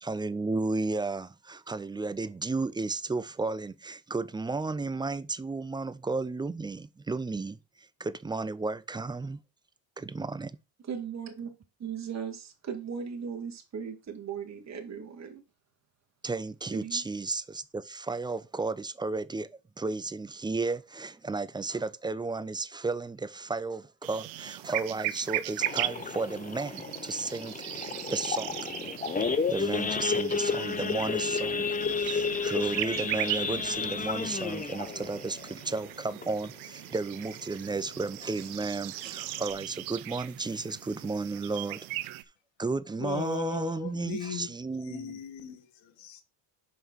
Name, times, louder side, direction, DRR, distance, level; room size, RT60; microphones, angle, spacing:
voice 1, 0.0-9.4 10.0-10.6 16.2-19.5 19.8-28.6 29.5-41.9 42.6-45.2, right 3 dB, 10° right, 0.3 m, -33 dB
voice 2, 10.9-11.5 11.8-15.4 16.7-17.0, right 7 dB, 35° right, 2.2 m, -37 dB
sound 1, 24.0-42.2, right 17 dB, 85° right, 0.8 m, -38 dB
Idling / Accelerating revving vroom / Sawing, 25.6-36.7 37.1-37.3 37.5-37.6 38.1-38.4 38.9-39.0 39.2-39.5, left 5 dB, 15° left, 0.8 m, -32 dB
sound 2, 30.8-35.9, left 7 dB, 40° left, 1.3 m, -47 dB
voice 3, 43.0-44.5 44.8-46.2, left 7 dB, 75° left, 1.8 m, -37 dB
5.7 x 5.5 x 6.2 m
cardioid pair, 105°, 47 cm